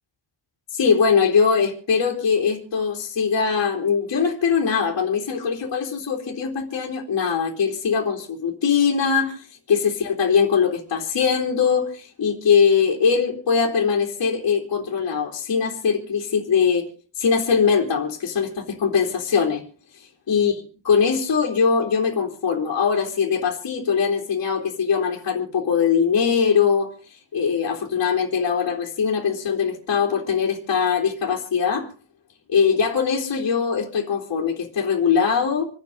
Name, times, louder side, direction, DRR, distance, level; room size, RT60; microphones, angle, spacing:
voice 1, 0.7-16.9 17.2-19.6 20.3-20.5 20.9-26.9 27.3-31.9 32.5-35.7, left 6 dB, 50° left, -2 dB, 3.4 m, -21 dB
28.0 x 9.7 x 3.9 m, 0.39 s
wide cardioid pair, 175°, 45 cm